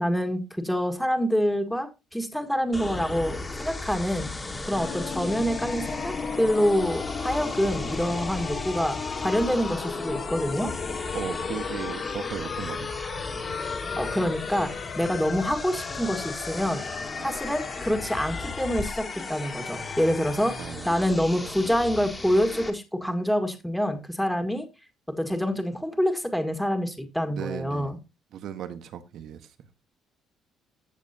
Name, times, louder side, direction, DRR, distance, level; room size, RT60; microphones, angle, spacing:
voice 1, 0.0-4.3 4.6-9.0 9.2-10.7 14.0-16.9 17.2-24.7 25.2-28.0, equal, ahead, 1.9 m, -26 dB
sound 1, 2.7-22.7, left 2 dB, 15° left, 1.9 m, -36 dB
sound 2, 4.7-20.7, left 6 dB, 50° left, 1.4 m, -36 dB
voice 2, 11.1-13.0 17.2-17.3 20.6-21.5 27.3-28.0 28.3-29.4, right 9 dB, 65° right, 1.5 m, -37 dB
14.5 x 7.0 x 2.9 m
cardioid pair, 120°, 0 cm